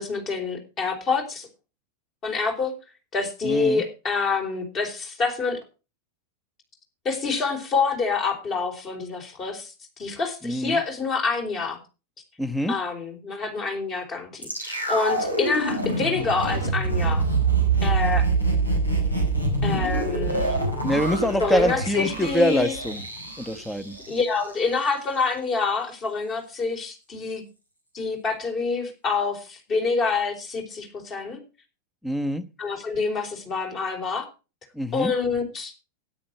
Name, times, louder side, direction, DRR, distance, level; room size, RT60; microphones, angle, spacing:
voice 1, 0.0-1.5 2.2-2.7 3.1-5.6 7.0-9.7 10.0-11.8 12.7-17.2 17.8-18.3 19.6-20.6 21.4-22.7 24.1-27.4 27.9-31.4 32.6-34.3 34.9-35.7, left 4 dB, 30° left, 4 dB, 4.6 m, -27 dB
voice 2, 3.4-3.8 10.4-10.8 12.4-12.7 20.8-23.0 23.4-24.0 32.0-32.4 34.7-35.1, equal, 5° left, 12 dB, 1.1 m, -24 dB
sound 1, 14.4-24.6 24.8-24.9, right 3 dB, 85° left, 4.9 m, -25 dB
13.0 x 10.5 x 4.6 m, 0.32 s
figure-of-eight pair, 90°, 0 cm